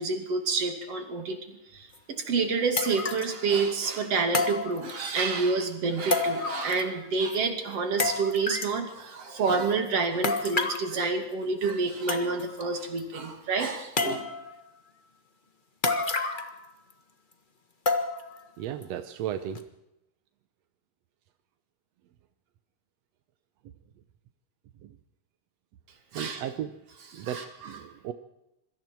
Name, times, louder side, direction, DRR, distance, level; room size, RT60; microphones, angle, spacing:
voice 1, 0.0-14.3 26.1-26.4 27.1-27.8, right 4 dB, 50° right, 5 dB, 3.3 m, -28 dB
sound 1, 1.9-2.0 2.8-3.4 4.3-5.2 6.1-7.0 7.3-7.4 8.0-8.8 10.2-10.9 11.7-11.8 12.1-12.6 13.0-13.1 14.0-14.5 15.8-16.6 16.9-17.0 17.9-18.4 18.8-18.9 19.5-19.6, left 3 dB, 60° left, 0.5 m, -29 dB
voice 2, 18.6-19.6 24.8-24.9 26.1-26.7 27.1-28.1, right 10 dB, 70° right, 9 dB, 1.7 m, -35 dB
26.5 x 22.0 x 4.6 m, 0.89 s
omnidirectional pair, 3.7 m